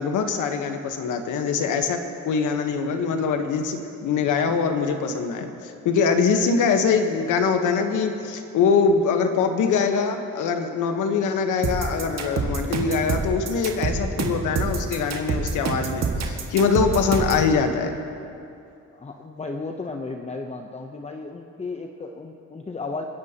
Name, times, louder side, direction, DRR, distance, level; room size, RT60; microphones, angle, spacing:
voice 1, 0.0-17.9, left 5 dB, 80° left, 6 dB, 1.3 m, -23 dB
sound 1, 11.6-17.5, right 5 dB, 60° right, 1.9 m, -26 dB
voice 2, 18.9-23.0, left 3 dB, 20° left, 3 dB, 0.8 m, -34 dB
29.5 x 11.0 x 3.0 m, 2.6 s
cardioid pair, 90°, 30 cm